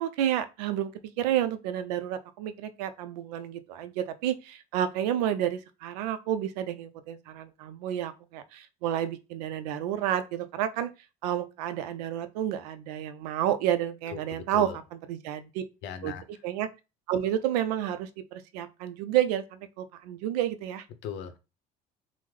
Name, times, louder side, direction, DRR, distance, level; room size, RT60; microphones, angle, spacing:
voice 1, 0.0-10.9 11.2-15.6 16.0-16.1 16.4-16.7 17.1-20.8, right 11 dB, 80° right, 0.4 m, -30 dB
voice 2, 14.3-14.8 15.8-16.2 21.0-21.4, left 7 dB, 60° left, 0.6 m, -38 dB
3.5 x 2.0 x 3.1 m
hypercardioid pair, 70°, 20 cm